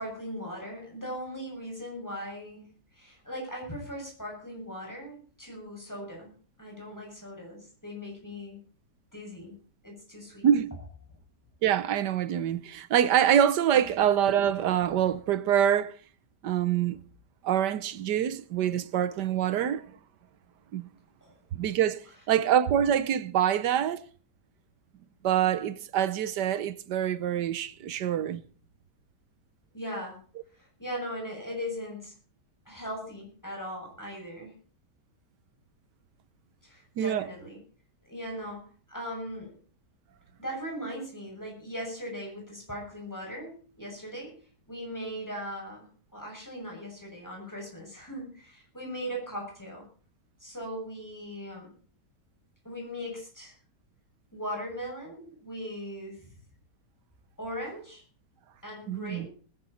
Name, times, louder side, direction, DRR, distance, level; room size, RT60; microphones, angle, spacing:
voice 1, 0.0-2.7 2.9-6.3 6.6-8.6 9.1-9.5 9.8-10.5 13.7-13.9 21.2-21.3 29.7-30.2 30.6-32.1 32.6-34.5 36.6-37.6 38.0-39.5 40.4-44.3 44.7-49.8 50.4-51.7 52.6-53.6 54.3-56.3 57.4-58.0 58.6-59.3, equal, 10° left, 6.9 m, -39 dB
voice 2, 11.6-15.9 16.4-17.0 17.4-19.9 20.7-20.9 21.5-22.0 22.3-24.0 25.2-28.4 37.0-37.3 58.9-59.3, right 9 dB, 80° right, 1.5 m, -25 dB
20.5 x 11.0 x 4.3 m
omnidirectional pair, 1.8 m